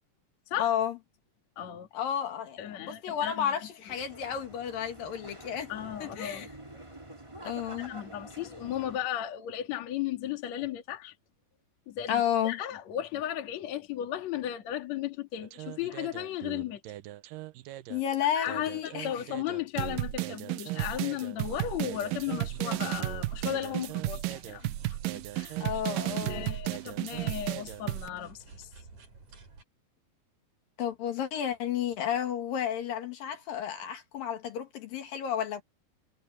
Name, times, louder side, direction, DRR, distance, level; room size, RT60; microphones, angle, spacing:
voice 1, 0.6-1.0 1.9-5.7 6.0-6.5 7.4-7.9 12.1-12.6 17.9-19.1 25.6-26.6 30.8-35.6, left 9 dB, 70° left, 3.6 m, -32 dB
voice 2, 1.6-1.9 2.6-3.6 5.7-6.5 7.8-11.1 11.9-16.8 18.3-25.6 26.3-28.7, left 11 dB, 50° left, 2.9 m, -35 dB
sound 1, 3.9-9.0, right 1 dB, 10° right, 2.6 m, -47 dB
sound 2, 15.4-18.0 18.5-28.1, right 17 dB, 75° right, 2.2 m, -34 dB
sound 3, 21.3-29.6, right 4 dB, 50° right, 5.8 m, -52 dB
omnidirectional pair, 4.3 m